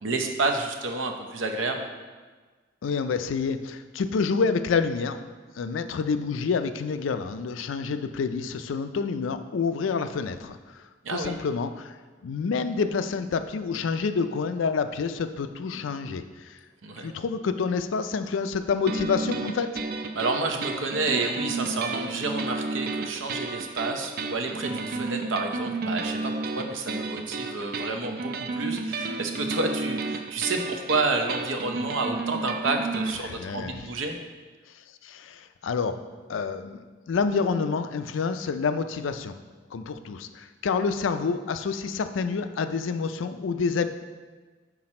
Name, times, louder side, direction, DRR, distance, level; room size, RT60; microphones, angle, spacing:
voice 1, 0.0-1.9 11.0-11.4 16.8-17.1 20.1-34.2, right 3 dB, 85° right, 4 dB, 0.7 m, -29 dB
voice 2, 2.8-5.2 5.6-10.8 11.1-11.9 12.2-16.6 17.0-19.7 33.2-33.7 35.0-36.0 36.3-39.4 39.7-43.9, left 5 dB, 85° left, 10 dB, 0.4 m, -28 dB
sound 1, 18.9-33.1, right 3 dB, 50° right, 0.4 m, -32 dB
5.9 x 4.8 x 4.2 m, 1.4 s
head